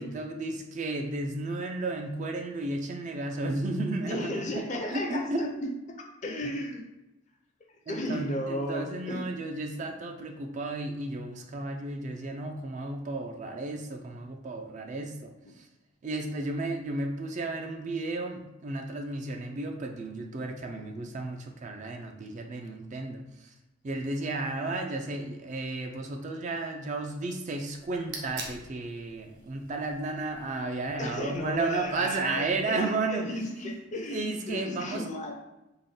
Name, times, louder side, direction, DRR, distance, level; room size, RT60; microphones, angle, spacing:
voice 1, 0.0-4.6 4.9-5.5 6.4-6.5 7.9-15.7 16.0-23.5 23.8-33.4 34.1-35.1, right 2 dB, 35° right, 3 dB, 0.3 m, -33 dB
voice 2, 4.1-6.8 7.9-9.2 31.0-35.3, left 1 dB, 35° left, 2 dB, 0.5 m, -34 dB
sound 1, 27.7-32.9, right 3 dB, 55° right, 0.7 m, -47 dB
3.6 x 2.1 x 3.7 m, 0.97 s
head